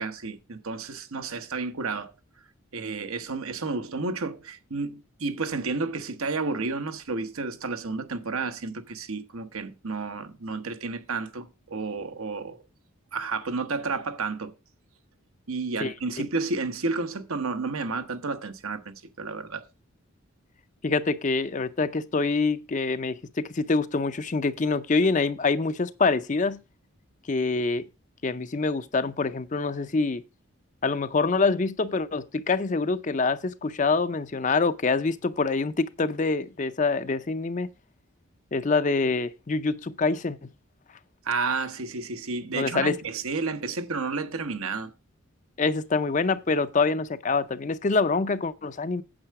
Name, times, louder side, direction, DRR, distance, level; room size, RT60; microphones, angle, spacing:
voice 1, 0.0-2.1 2.7-12.6 13.1-14.5 15.5-19.6 41.2-44.9, right 4 dB, 80° right, 1.1 m, -31 dB
voice 2, 20.8-26.6 27.3-27.9 28.2-30.2 30.8-37.7 38.5-40.5 42.5-43.0 45.6-49.0, left 4 dB, 35° left, 0.5 m, -25 dB
8.8 x 7.6 x 4.6 m
head